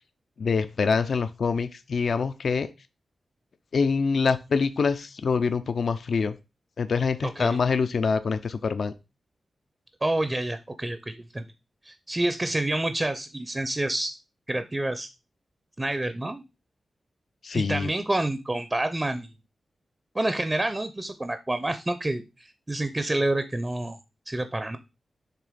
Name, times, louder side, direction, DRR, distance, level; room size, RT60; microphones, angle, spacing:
voice 1, 0.4-2.7 3.7-6.4 6.8-8.9 17.4-17.9, left 5 dB, 65° left, 0.5 m, -25 dB
voice 2, 10.0-11.5 11.8-14.2 14.5-15.1 15.8-16.4 17.5-19.3 20.1-24.0 24.3-24.8, right 1 dB, 20° right, 0.5 m, -28 dB
6.8 x 3.4 x 5.0 m
wide cardioid pair, 110°, 0 cm